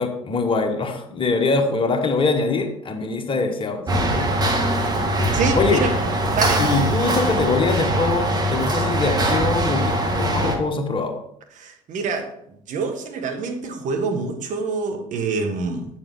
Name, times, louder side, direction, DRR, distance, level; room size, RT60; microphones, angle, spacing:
voice 1, 0.0-4.3 5.6-5.8 6.6-11.2, left 3 dB, 30° left, 4 dB, 1.4 m, -23 dB
sound 1, 3.9-10.6, right 1 dB, 20° right, 1.6 m, -22 dB
voice 2, 5.3-5.9 6.3-6.6 11.6-12.3 12.7-15.9, right 4 dB, 45° right, 4 dB, 1.4 m, -26 dB
7.6 x 7.0 x 3.6 m, 0.72 s
figure-of-eight pair, 60°, 18 cm